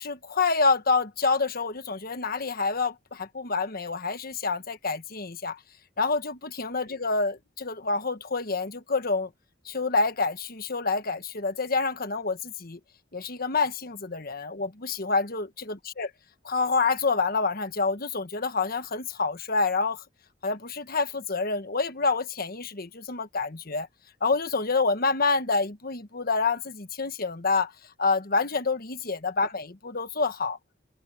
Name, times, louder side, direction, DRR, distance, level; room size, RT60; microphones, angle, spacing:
voice 1, 0.0-5.6 6.0-9.3 9.6-12.8 13.1-16.1 16.4-20.0 20.4-23.9 24.2-27.7 28.0-30.6, left 4 dB, 50° left, 1.4 m, -27 dB
head